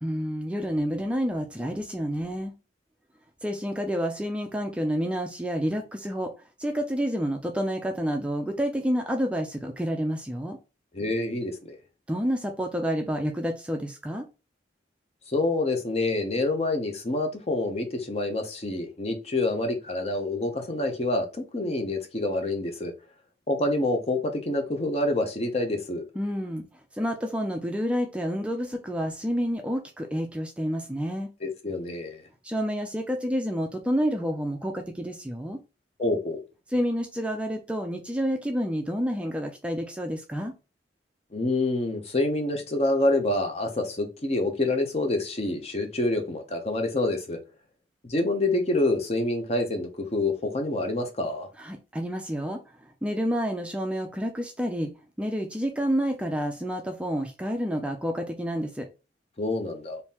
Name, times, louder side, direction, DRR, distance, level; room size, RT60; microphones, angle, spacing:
voice 1, 0.0-2.5 3.4-6.3 6.6-10.6 12.1-14.3 26.2-26.6 26.9-31.3 32.4-35.6 36.7-40.5 51.6-54.9 55.2-58.9, equal, 5° right, 0.3 m, -29 dB
voice 2, 10.9-11.8 15.3-21.3 21.5-22.9 23.5-26.0 31.4-32.2 36.0-36.4 41.3-47.4 48.0-51.5 59.4-60.0, left 2 dB, 35° left, 0.6 m, -27 dB
3.6 x 2.6 x 2.8 m
head